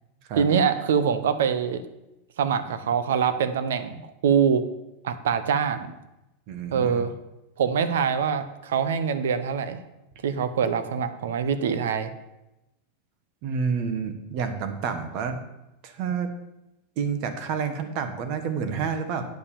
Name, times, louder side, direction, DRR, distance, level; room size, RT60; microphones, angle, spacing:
voice 1, 0.4-1.8 2.4-4.7 5.0-5.9 6.7-7.1 7.6-9.8 10.2-12.1, right 7 dB, 90° right, 12 dB, 0.9 m, -24 dB
voice 2, 6.5-7.0 13.4-15.4 15.8-16.3 17.0-19.3, right 6 dB, 50° right, 8 dB, 1.4 m, -29 dB
9.2 x 5.7 x 7.1 m, 0.94 s
supercardioid pair, 145°, 0 cm